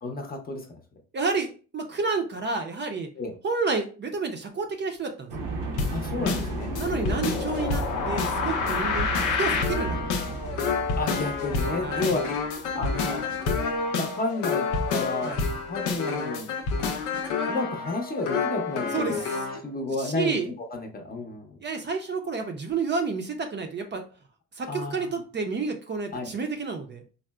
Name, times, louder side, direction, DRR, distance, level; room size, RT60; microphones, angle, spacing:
voice 1, 0.0-0.7 3.2-3.3 5.9-7.2 11.0-12.2 12.7-13.2 13.9-15.3 15.7-16.5 17.4-19.2 19.6-20.4 20.7-21.6 24.7-25.1 26.1-26.3, left 2 dB, 30° left, 2 dB, 0.6 m, -31 dB
voice 2, 1.1-1.5 1.7-3.1 3.4-5.3 6.8-10.2 10.5-10.6 11.8-12.2 15.2-15.4 18.9-19.2 19.9-20.5 21.6-24.0 24.6-27.0, right 4 dB, 35° right, 5 dB, 0.5 m, -30 dB
sound 1, 5.3-13.4, right 3 dB, 85° right, 0.7 m, -35 dB
sound 2, 5.8-19.6, left 4 dB, 90° left, 0.6 m, -28 dB
3.6 x 2.0 x 2.2 m, 0.37 s
cardioid pair, 90°, 30 cm